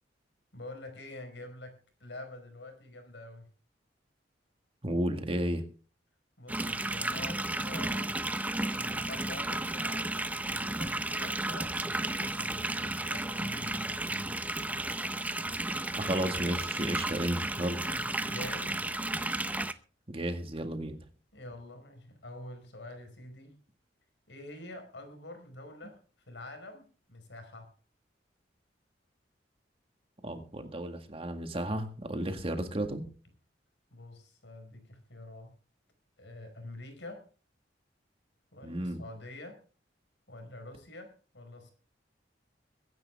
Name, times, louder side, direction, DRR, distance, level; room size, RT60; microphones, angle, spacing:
voice 1, 0.5-3.5 6.4-8.2 8.7-14.4 17.8-18.8 21.3-23.6 24.3-27.8 33.9-35.6 36.2-37.3 38.5-39.6 40.3-41.7, left 2 dB, 75° left, 4.8 m, -47 dB
voice 2, 4.8-5.6 16.0-17.8 20.1-21.0 30.2-33.0 38.6-39.0, right 1 dB, 30° right, 1.8 m, -33 dB
sound 1, 6.5-19.7, right 2 dB, 10° right, 0.7 m, -33 dB
23.0 x 10.5 x 3.5 m
head